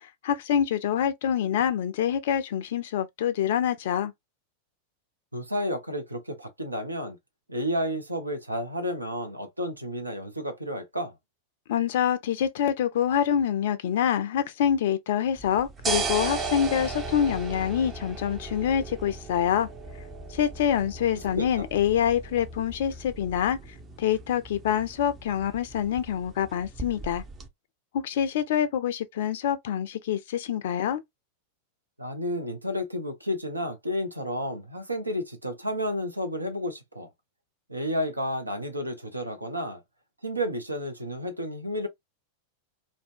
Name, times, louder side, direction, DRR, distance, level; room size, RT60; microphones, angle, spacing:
voice 1, 0.0-4.1 11.7-19.7 20.3-23.6 24.0-27.2 27.9-31.0, left 9 dB, 55° left, 0.4 m, -26 dB
voice 2, 5.3-7.2 7.5-11.1 21.3-21.7 32.0-37.1 37.7-39.8 40.2-41.9, equal, 85° right, 0.5 m, -31 dB
sound 1, 15.4-27.5, right 4 dB, 25° right, 0.5 m, -36 dB
2.6 x 2.1 x 2.4 m
figure-of-eight pair, 90°, 0 cm